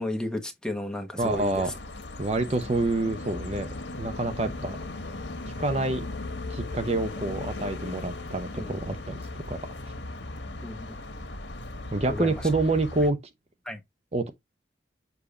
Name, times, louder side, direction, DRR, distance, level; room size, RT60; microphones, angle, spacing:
voice 1, 0.0-1.7 8.5-8.8 10.6-10.9 12.1-12.4 13.7-13.8, left 1 dB, 5° left, 1.1 m, -33 dB
sound 1, 1.2-13.1, left 2 dB, 80° left, 1.4 m, -37 dB
voice 2, 1.2-1.7 2.2-3.7 4.0-4.8 5.6-6.0 6.5-9.2 9.5-9.6 11.9-13.2 14.1-14.3, right 2 dB, 35° right, 0.7 m, -27 dB
7.0 x 2.8 x 4.8 m
head